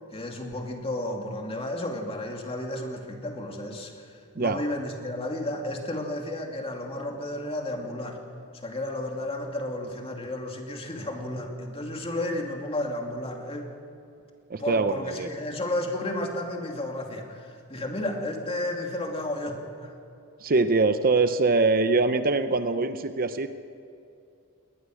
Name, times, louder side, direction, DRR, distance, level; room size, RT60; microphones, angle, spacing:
voice 1, 0.1-8.2 8.6-13.7 14.6-19.9, left 1 dB, 25° left, 2 dB, 2.6 m, -32 dB
voice 2, 14.5-15.3 20.4-23.5, right 3 dB, 40° right, 10 dB, 0.7 m, -23 dB
20.5 x 19.5 x 6.4 m, 2.6 s
head